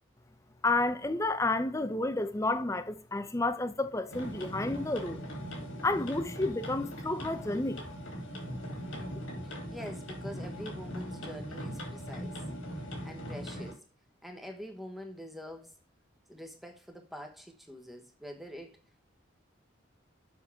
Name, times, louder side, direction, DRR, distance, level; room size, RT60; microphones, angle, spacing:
voice 1, 0.6-5.3 5.8-7.8, left 2 dB, 15° left, 0.6 m, -31 dB
Water mill - the inside of a grind stone, 4.1-13.7, equal, 85° left, 2.8 m, -40 dB
voice 2, 9.7-12.4 13.0-13.8 14.2-15.7 16.3-18.8, equal, ahead, 1.1 m, -45 dB
7.2 x 6.1 x 3.5 m
head